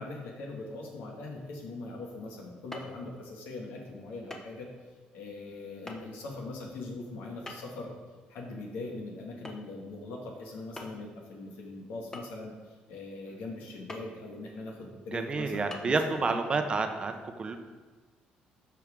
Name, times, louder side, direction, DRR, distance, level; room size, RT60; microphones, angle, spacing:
voice 1, 0.0-4.7 5.1-7.9 8.3-16.6, left 2 dB, 90° left, -1 dB, 2.0 m, -41 dB
sound 1, 2.7-3.0 4.3-4.5 4.8-4.9 5.9-6.0 7.5-7.8 9.4-9.7 10.0-10.1 10.8-11.1 12.1-12.6 13.9-14.1 14.7-14.8 15.7-15.8, left 1 dB, 15° left, 1.1 m, -43 dB
voice 2, 15.1-17.6, right 4 dB, 35° right, 6 dB, 0.8 m, -29 dB
13.0 x 4.7 x 3.7 m, 1.4 s
cardioid pair, 105°, 3 cm